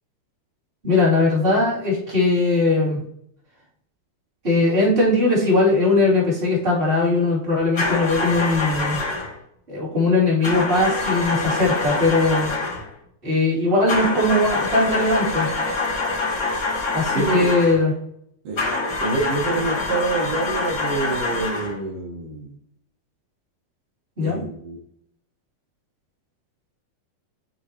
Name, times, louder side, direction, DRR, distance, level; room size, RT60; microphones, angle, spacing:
voice 1, 0.8-3.0 4.4-9.0 9.7-12.5 13.2-15.5 16.9-17.9 24.2-24.4, left 2 dB, 15° right, -7 dB, 2.4 m, -20 dB
sound 1, 7.8-9.3 10.4-12.9 13.9-17.8 18.6-21.8, left 3 dB, 35° left, 2.0 m, -25 dB
voice 2, 17.1-17.6 18.4-18.6 19.0-22.5 24.2-24.8, right 3 dB, 65° right, -3 dB, 1.6 m, -26 dB
11.5 x 3.8 x 2.9 m, 0.70 s
omnidirectional pair, 4.3 m